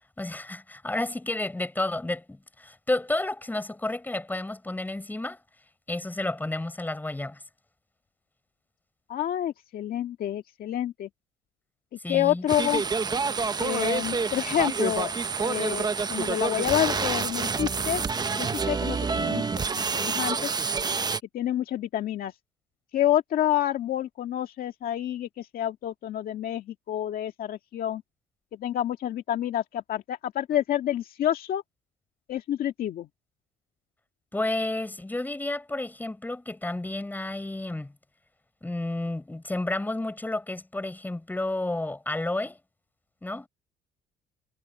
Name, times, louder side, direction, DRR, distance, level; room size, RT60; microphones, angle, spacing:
voice 1, 0.2-5.4 5.9-7.4 12.0-12.4 34.3-37.9 38.6-42.6 43.2-43.5, left 2 dB, 10° left, 6.1 m, -31 dB
voice 2, 9.1-11.1 12.1-12.8 13.6-15.1 15.4-18.0 18.3-19.4 19.7-20.5 21.3-22.3 22.9-28.0 28.5-31.6 32.3-33.1, left 11 dB, 60° left, 1.9 m, -28 dB
sound 1, 12.5-21.2, right 5 dB, 25° right, 0.9 m, -28 dB
cardioid pair, 110°, 17 cm